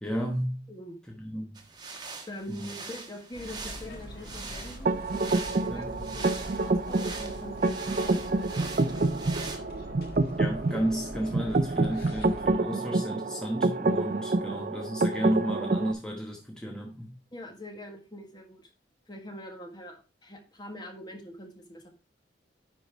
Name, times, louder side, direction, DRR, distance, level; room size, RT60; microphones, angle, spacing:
voice 1, 0.0-0.6 1.2-1.5 2.6-2.7 5.7-6.1 10.4-17.1, equal, 5° left, 1.1 m, -32 dB
sound 1, 1.5-9.6, right 4 dB, 20° right, 1.2 m, -42 dB
voice 2, 2.3-8.3 17.3-18.7 19.1-21.9, left 1 dB, 20° left, 1.4 m, -43 dB
sound 2, 3.3-12.5, equal, 50° left, 1.6 m, -43 dB
sound 3, 4.9-15.9, right 2 dB, 45° right, 0.5 m, -28 dB
10.0 x 4.1 x 4.5 m
head